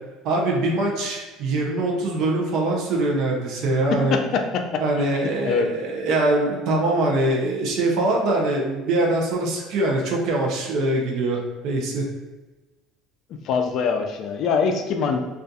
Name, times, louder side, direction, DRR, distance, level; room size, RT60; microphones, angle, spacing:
voice 1, 0.2-4.2 4.8-12.1, right 2 dB, 65° right, -1 dB, 0.5 m, -23 dB
voice 2, 3.9-5.1 5.4-5.7 13.4-15.2, left 5 dB, 60° left, 4 dB, 0.4 m, -23 dB
2.5 x 2.4 x 2.3 m, 1.2 s
hypercardioid pair, 80°, 0 cm